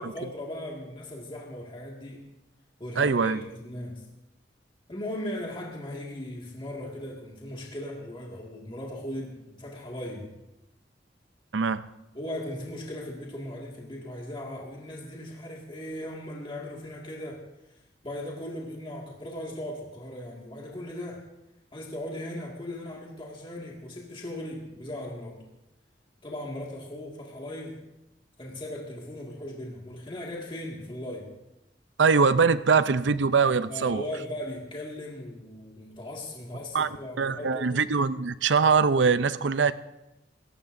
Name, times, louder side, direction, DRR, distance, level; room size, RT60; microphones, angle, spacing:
voice 1, 0.0-2.3 2.8-4.0 4.9-10.3 12.1-17.4 18.0-21.2 21.7-25.4 26.2-27.8 28.4-31.3 33.7-37.7, left 1 dB, 30° left, -2 dB, 2.0 m, -38 dB
voice 2, 3.0-3.4 11.5-11.8 32.0-34.0 36.7-36.9 37.2-39.7, right 5 dB, 80° right, 14 dB, 0.6 m, -22 dB
27.5 x 15.0 x 2.6 m, 0.91 s
head